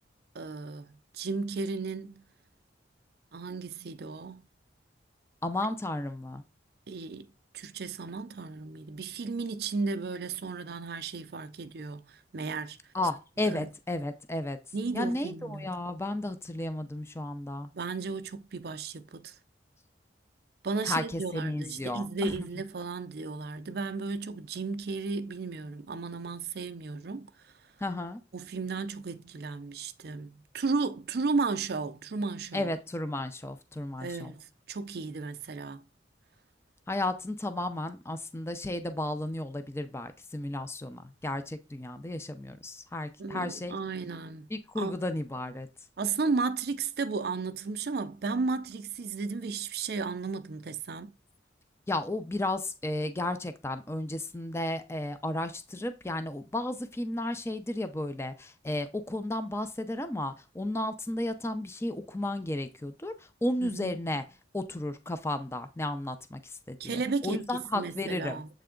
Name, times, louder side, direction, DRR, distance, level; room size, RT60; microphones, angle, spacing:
voice 1, 0.3-2.2 3.3-4.4 6.9-7.2 7.5-12.8 13.5-13.7 14.7-15.7 17.7-19.4 20.6-27.5 28.3-32.7 34.0-35.8 43.2-44.5 44.8-45.0 46.0-51.1 63.6-63.9 66.8-67.4 67.7-68.5, right 4 dB, 55° right, 0.4 m, -34 dB
voice 2, 5.4-6.4 12.9-14.6 14.9-17.7 20.8-22.5 27.8-28.2 32.5-34.3 36.9-43.8 44.5-45.7 51.9-64.2 64.5-68.4, left 1 dB, 15° left, 0.5 m, -33 dB
7.6 x 3.4 x 3.7 m
head